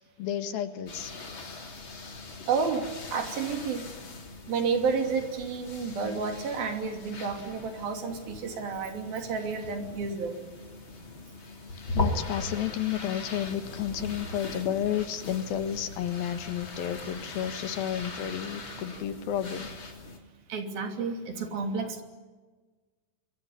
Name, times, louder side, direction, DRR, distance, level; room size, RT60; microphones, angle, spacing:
voice 1, 0.2-1.1 11.9-19.7, left 10 dB, 75° left, 9 dB, 3.2 m, -31 dB
sound 1, 0.9-20.2, left 3 dB, 35° left, 3.7 m, -39 dB
voice 2, 2.5-3.8 4.5-10.4 20.5-22.0, right 5 dB, 70° right, 4 dB, 4.6 m, -31 dB
26.5 x 23.5 x 9.7 m, 1.3 s
omnidirectional pair, 4.4 m